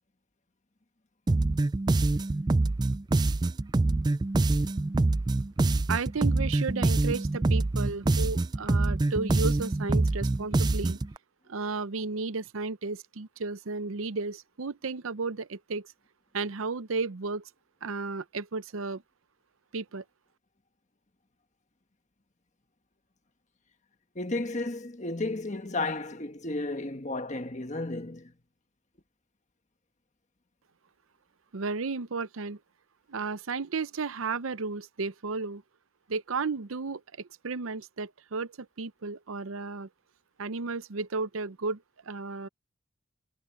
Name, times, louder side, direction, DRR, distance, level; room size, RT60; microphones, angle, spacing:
sound 1, 1.3-11.1, right 2 dB, 20° right, 0.3 m, -25 dB
voice 1, 5.9-11.0 11.5-15.9 16.3-17.5 17.8-19.0 19.7-20.0 31.5-32.6 33.1-35.6 36.1-39.9 40.4-42.5, right 4 dB, 85° right, 0.7 m, -33 dB
voice 2, 24.1-28.3, left 2 dB, 35° left, 1.5 m, -33 dB
head